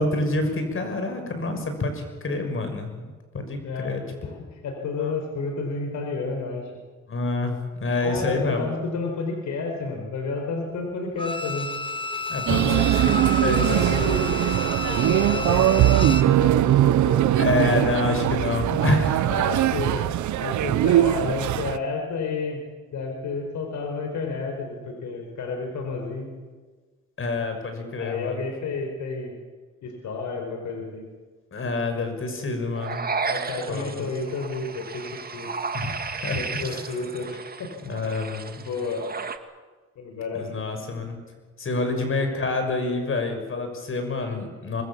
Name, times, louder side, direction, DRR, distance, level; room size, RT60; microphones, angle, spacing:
voice 1, 0.0-4.0 5.0-5.1 7.1-8.7 12.3-12.7 13.0-13.2 13.4-13.7 17.4-19.3 27.2-28.4 31.5-33.1 33.7-34.1 35.7-36.9 37.8-38.6 40.3-41.2 41.6-44.8, left 2 dB, 45° left, 6 dB, 6.2 m, -27 dB
voice 2, 4.2-6.7 8.0-11.7 12.5-12.8 13.5-14.5 14.8-17.4 17.8-17.9 19.2-22.6 22.9-26.3 28.0-29.3 29.8-31.1 33.2-35.5 36.3-37.9 38.5-39.0 40.0-40.5 41.8-41.9, left 4 dB, 70° left, 2 dB, 4.8 m, -31 dB
Bowed string instrument, 11.2-16.4 16.7-16.8, left 2 dB, 15° left, 1.5 m, -31 dB
sound 1, 12.5-21.8, right 13 dB, 70° right, 0.8 m, -21 dB
sound 2, 32.7-39.4, right 5 dB, 30° right, 1.8 m, -33 dB
25.5 x 21.0 x 7.3 m, 1.4 s
cardioid pair, 90°, 30 cm